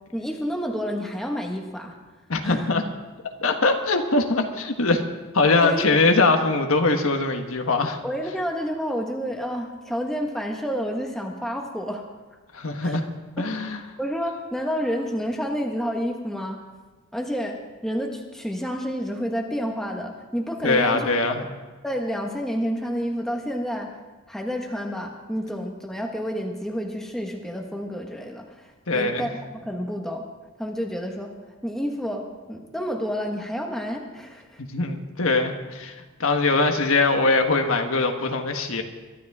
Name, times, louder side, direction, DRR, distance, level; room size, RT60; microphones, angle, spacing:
voice 1, 0.1-1.9 2.4-2.7 5.4-5.9 8.0-12.0 12.8-13.0 13.4-13.5 14.0-16.6 17.1-21.1 21.4-21.5 21.8-23.9 24.3-29.3 29.6-30.2 30.6-31.3 31.6-34.6, equal, ahead, 1 dB, 1.5 m, -29 dB
voice 2, 2.3-2.8 3.4-5.0 5.3-8.0 12.5-13.0 13.4-13.8 20.6-21.4 28.9-29.3 34.6-38.8, left 3 dB, 75° left, 5 dB, 1.4 m, -22 dB
23.0 x 12.5 x 3.6 m, 1.3 s
head